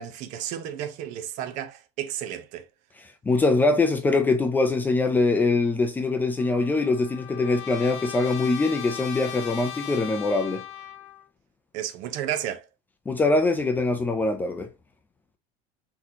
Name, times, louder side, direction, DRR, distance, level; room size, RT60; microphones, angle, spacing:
voice 1, 0.0-2.7 11.7-12.6, right 10 dB, 50° right, 0.8 m, -32 dB
voice 2, 3.3-10.6 13.1-14.7, left 3 dB, 10° left, 0.5 m, -23 dB
Trumpet, 6.4-11.3, left 10 dB, 40° left, 0.9 m, -38 dB
4.3 x 3.8 x 2.8 m
cardioid pair, 165°, 16 cm